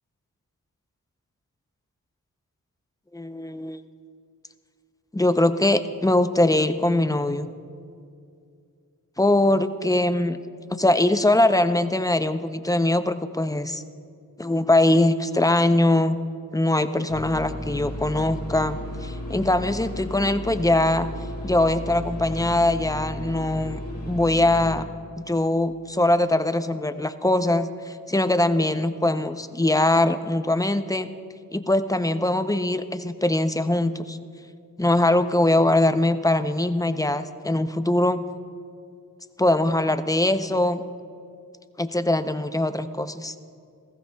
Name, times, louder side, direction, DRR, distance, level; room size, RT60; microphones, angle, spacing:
voice 1, 3.1-3.8 5.1-7.5 9.2-10.4 10.7-13.8 14.4-16.2 16.5-21.1 21.4-23.8 24.1-24.8 25.2-31.1 31.5-34.2 34.8-38.2 39.4-40.8 41.8-43.3, left 1 dB, 10° left, 10 dB, 0.6 m, -22 dB
sound 1, 17.1-24.8, left 1 dB, 40° left, 2.0 m, -34 dB
19.5 x 15.0 x 2.3 m, 2.3 s
cardioid pair, 50°, 35 cm